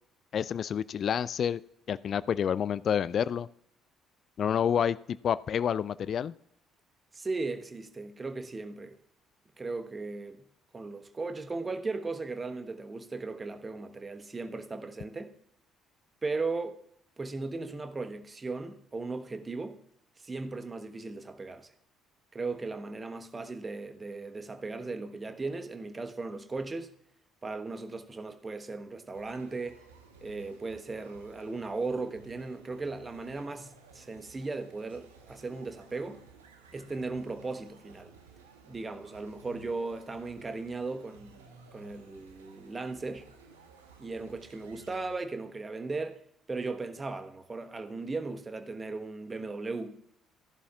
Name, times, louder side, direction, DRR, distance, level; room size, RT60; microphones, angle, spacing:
voice 1, 0.3-1.6 1.9-3.5 4.4-6.3, left 8 dB, 50° left, 0.3 m, -28 dB
voice 2, 7.1-9.0 9.6-10.5 10.7-15.3 16.2-16.8 17.2-19.8 20.2-21.7 22.3-26.9 27.4-29.8 30.2-36.2 36.7-38.1 38.7-41.4 41.7-43.2 44.0-46.2 46.5-50.0, right 3 dB, 25° right, 1.2 m, -37 dB
sound 1, 29.1-45.1, right 4 dB, 80° right, 1.2 m, -56 dB
16.0 x 11.0 x 2.4 m
figure-of-eight pair, 50°, 0 cm